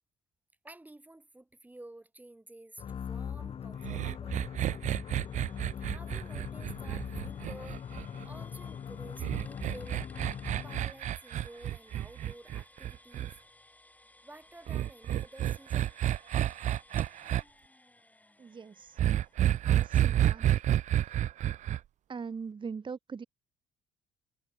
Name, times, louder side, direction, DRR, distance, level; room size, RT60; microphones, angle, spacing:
voice 1, 0.6-4.9 5.8-7.8 8.2-10.1 10.5-13.4 14.2-15.9, right 2 dB, 10° right, 4.8 m, -52 dB
sound 1, 2.8-11.0, left 8 dB, 35° left, 0.6 m, -41 dB
sound 2, 3.8-8.3 9.2-13.3 14.7-17.4 19.0-21.8, right 12 dB, 45° right, 0.4 m, -30 dB
sound 3, 5.2-20.9, left 1 dB, 10° left, 5.4 m, -60 dB
voice 2, 18.4-19.0 19.6-20.4 22.1-23.2, right 5 dB, 30° right, 1.7 m, -41 dB
cardioid pair, 110°, 17 cm